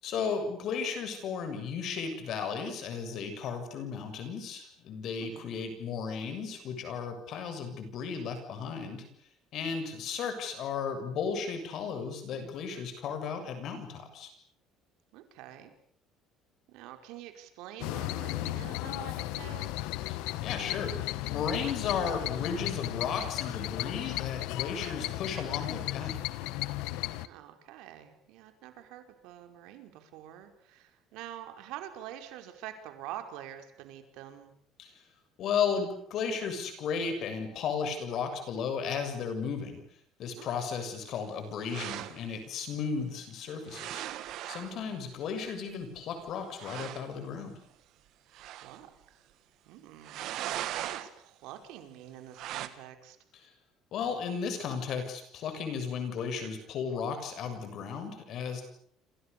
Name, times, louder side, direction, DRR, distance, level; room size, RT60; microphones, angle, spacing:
voice 1, 0.0-9.0 9.5-14.3 20.1-26.2 34.8-34.9 35.4-39.8 40.2-44.0 44.5-47.5 53.9-58.6, left 6 dB, 45° left, 8 dB, 7.1 m, -34 dB
voice 2, 15.1-15.7 16.7-19.7 27.2-34.5 40.4-40.5 44.6-45.0 48.4-49.3 49.6-50.3 50.7-53.2, right 12 dB, 75° right, 7 dB, 5.2 m, -46 dB
sound 1, 17.8-27.3, left 17 dB, 85° left, 1.3 m, -35 dB
sound 2, 41.7-42.2 43.7-44.8 46.0-46.1 46.3-46.4 46.6-47.1 48.3-48.8 50.0-51.1 52.3-52.7, right 13 dB, 55° right, 2.3 m, -38 dB
28.5 x 27.5 x 7.0 m, 0.63 s
cardioid pair, 160°, 0 cm